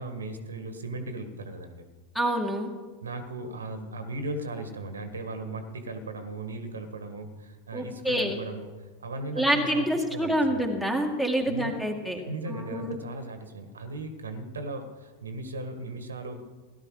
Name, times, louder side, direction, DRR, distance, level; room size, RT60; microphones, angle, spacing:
voice 1, 0.0-1.8 3.0-9.8 10.1-10.7 11.4-11.8 12.1-16.4, right 2 dB, 70° right, 8 dB, 1.5 m, -37 dB
voice 2, 2.1-2.7 7.7-8.4 9.4-12.2 12.5-13.0, right 1 dB, 5° left, 3 dB, 2.1 m, -27 dB
17.0 x 12.0 x 4.9 m, 1.3 s
figure-of-eight pair, 90°, 0 cm